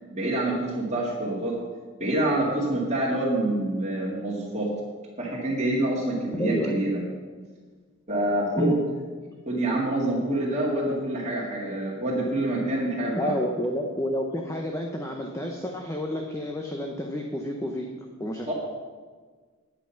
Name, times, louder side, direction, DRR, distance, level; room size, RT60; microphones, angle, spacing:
voice 1, 0.1-1.6 2.0-4.7 5.2-7.0 8.1-8.8 9.5-13.4 18.5-18.6, right 1 dB, 35° right, -7 dB, 2.2 m, -26 dB
voice 2, 6.4-6.8 8.6-8.7 13.2-17.9 18.2-18.5, equal, 15° left, 2 dB, 0.8 m, -29 dB
10.5 x 8.9 x 5.8 m, 1.5 s
head